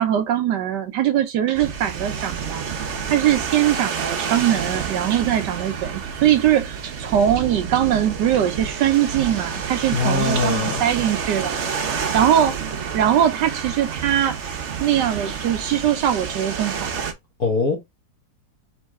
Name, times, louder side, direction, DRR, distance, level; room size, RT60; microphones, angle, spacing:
voice 1, 0.0-2.6 3.1-11.5 12.0-12.6 12.9-14.4 14.8-16.9, right 10 dB, 75° right, 1.2 m, -21 dB
sound 1, 1.5-17.1, right 6 dB, 50° right, 1.0 m, -29 dB
voice 2, 9.9-10.8 17.4-17.8, left 4 dB, 55° left, 1.8 m, -22 dB
4.6 x 3.2 x 3.5 m
omnidirectional pair, 2.0 m